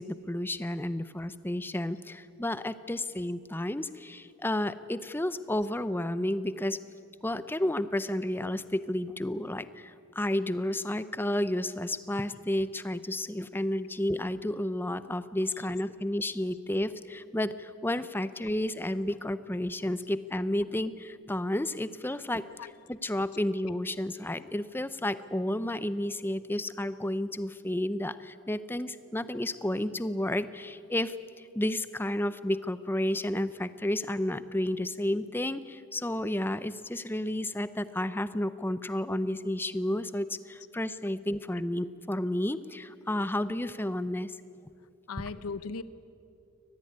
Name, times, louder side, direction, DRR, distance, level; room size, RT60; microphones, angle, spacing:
voice 1, 0.0-6.8 7.2-22.4 22.9-44.4, left 1 dB, 10° left, 14 dB, 0.6 m, -31 dB
voice 2, 45.1-45.8, left 4 dB, 80° left, 15 dB, 0.7 m, -38 dB
23.5 x 19.0 x 9.6 m, 2.5 s
head